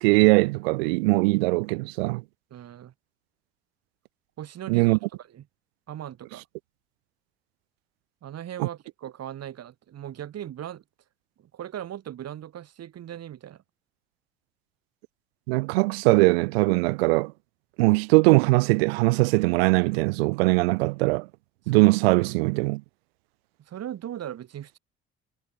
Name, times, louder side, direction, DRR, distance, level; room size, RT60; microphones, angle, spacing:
voice 1, 0.0-2.2 4.7-5.0 8.6-8.7 15.5-17.3 17.8-21.3 21.7-22.8, right 25 dB, 65° right, 0.5 m, -21 dB
voice 2, 2.5-2.9 4.4-5.4 5.9-6.4 8.2-10.8 11.4-13.6 21.7-21.8 23.7-24.8, right 11 dB, 50° right, 6.5 m, -38 dB
figure-of-eight pair, 50°, 32 cm